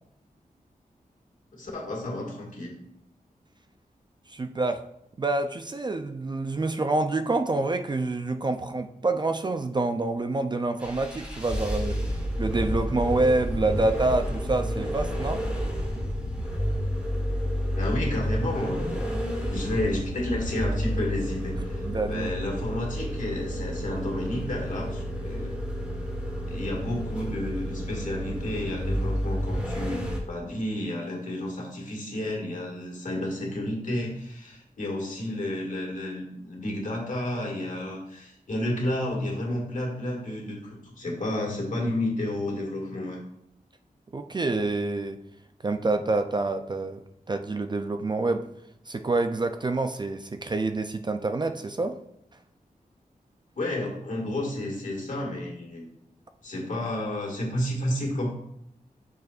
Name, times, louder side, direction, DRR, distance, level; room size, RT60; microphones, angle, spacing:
voice 1, 1.5-2.7 17.7-25.6 26.5-30.0 30.3-43.2 53.6-55.8 56.4-58.3, left 1 dB, 60° left, -1 dB, 1.8 m, -31 dB
voice 2, 4.3-4.8 5.2-12.0 12.4-15.4 21.8-22.3 44.1-45.2 45.6-47.0 47.3-48.5 48.9-52.0, right 2 dB, 30° right, 8 dB, 0.3 m, -27 dB
sound 1, 10.8-30.2, equal, 5° right, 1.4 m, -30 dB
6.6 x 6.5 x 2.4 m, 0.76 s
wide cardioid pair, 120°, 15 cm